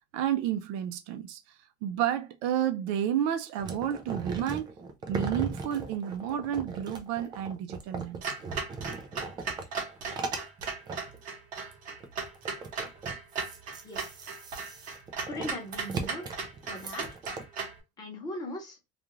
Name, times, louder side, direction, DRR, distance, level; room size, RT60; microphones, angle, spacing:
voice 1, 0.1-4.7 5.0-8.3, right 10 dB, 75° right, 0.5 m, -31 dB
sound 1, 3.6-11.2 11.7-11.8 12.0-17.4, right 4 dB, 20° right, 0.3 m, -38 dB
Clock, 8.2-17.8, right 4 dB, 40° right, 0.9 m, -37 dB
voice 2, 15.3-16.3 16.6-17.2 18.0-18.8, left 1 dB, 20° left, 0.9 m, -39 dB
2.4 x 2.4 x 3.0 m
cardioid pair, 175°, 21 cm